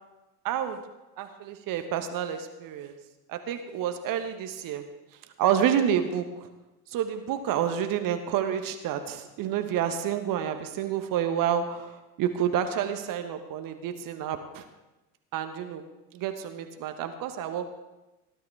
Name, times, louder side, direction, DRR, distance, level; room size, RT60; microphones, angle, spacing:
voice 1, 0.4-0.8 1.2-2.9 3.3-4.8 5.4-6.5 6.9-14.6 15.3-15.9 16.1-17.7, right 9 dB, 45° right, 8 dB, 1.3 m, -29 dB
18.0 x 12.0 x 3.4 m, 1.0 s
figure-of-eight pair, 65°, 46 cm